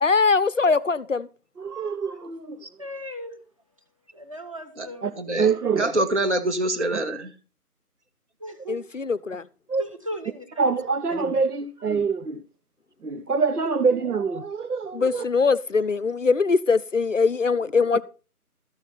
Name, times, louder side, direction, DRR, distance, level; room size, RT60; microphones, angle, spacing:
voice 1, 0.0-1.3 8.7-9.5 14.9-18.0, left 4 dB, 55° left, 0.6 m, -22 dB
voice 2, 1.6-2.6 5.0-5.1 5.4-5.9 9.7-9.8 10.6-12.4 13.0-15.2, right 5 dB, 75° right, 1.2 m, -25 dB
voice 3, 2.8-3.4 4.1-5.1 8.4-8.8 9.8-10.6, equal, 20° right, 1.1 m, -37 dB
voice 4, 5.2-5.5 5.8-7.3, right 1 dB, 50° right, 1.9 m, -25 dB
13.5 x 6.7 x 5.9 m
figure-of-eight pair, 175°, 46 cm